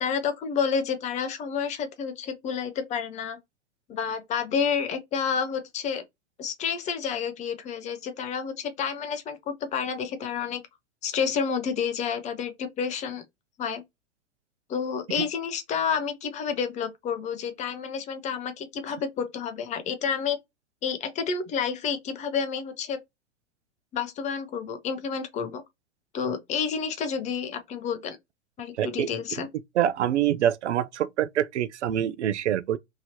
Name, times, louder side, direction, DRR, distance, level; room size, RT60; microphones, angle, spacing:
voice 1, 0.0-3.4 3.9-6.0 6.4-10.6 11.0-13.2 13.6-13.8 14.7-20.4 20.8-23.0 23.9-25.6 26.1-28.2 28.6-29.5, left 6 dB, 20° left, 0.5 m, -29 dB
voice 2, 28.8-29.1 29.8-32.8, right 11 dB, 75° right, 0.5 m, -25 dB
2.9 x 2.7 x 2.7 m
hypercardioid pair, 110°, 35 cm